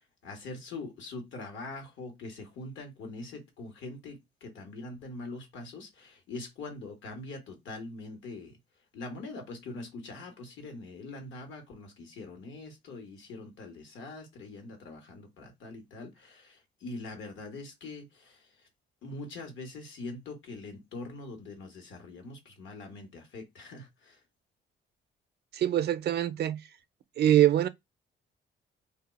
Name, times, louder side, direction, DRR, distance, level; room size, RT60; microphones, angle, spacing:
voice 1, 0.0-8.6 8.9-18.7 19.0-24.2, left 2 dB, 75° left, 1.4 m, -43 dB
voice 2, 25.5-26.6 27.2-27.7, right 11 dB, 55° right, 0.5 m, -24 dB
2.6 x 2.4 x 4.0 m
cardioid pair, 90°, 20 cm